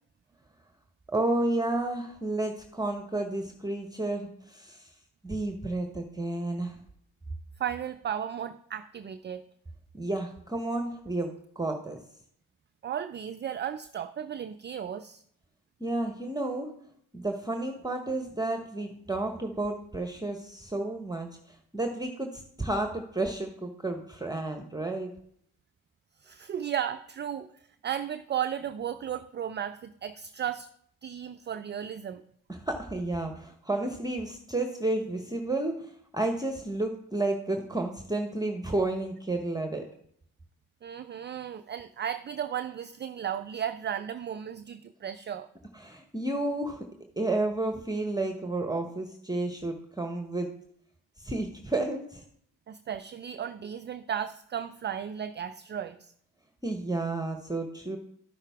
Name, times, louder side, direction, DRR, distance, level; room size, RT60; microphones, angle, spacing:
voice 1, 1.1-4.9 5.2-6.8 9.9-12.0 15.8-16.7 17.1-25.1 32.5-39.8 45.8-46.8 47.2-50.5 51.2-52.2 56.6-58.0, right 2 dB, 10° right, 5 dB, 1.0 m, -31 dB
voice 2, 7.6-9.4 12.8-15.2 26.2-27.5 27.8-30.7 31.0-32.2 40.8-45.5 52.7-56.1, right 9 dB, 25° right, 11 dB, 0.4 m, -35 dB
13.0 x 5.6 x 3.5 m, 0.68 s
hypercardioid pair, 55°, 44 cm